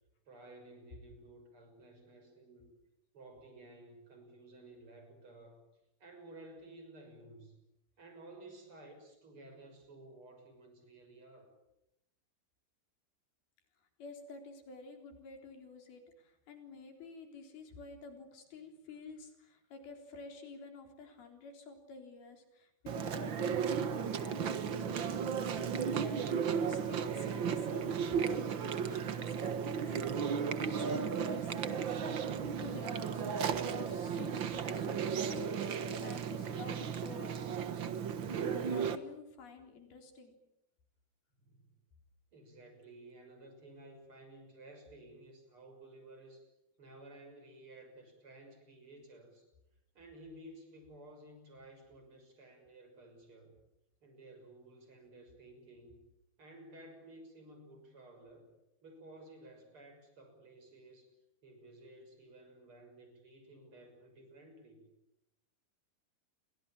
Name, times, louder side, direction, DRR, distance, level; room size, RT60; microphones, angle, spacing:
voice 1, 0.3-2.7 3.1-5.7 6.0-7.5 8.0-11.5 41.4-41.7 42.3-46.5 46.8-49.5 50.0-53.6 54.0-56.0 56.4-58.5 58.8-61.1 61.4-64.9, right 2 dB, 35° right, 5 dB, 7.1 m, -55 dB
voice 2, 14.0-35.6 36.0-37.4 38.4-40.3, left 4 dB, 80° left, 5 dB, 5.7 m, -50 dB
Chewing mastication, 22.9-39.0, right 7 dB, 70° right, 1.1 m, -35 dB
29.5 x 24.5 x 7.5 m, 0.84 s
omnidirectional pair, 4.3 m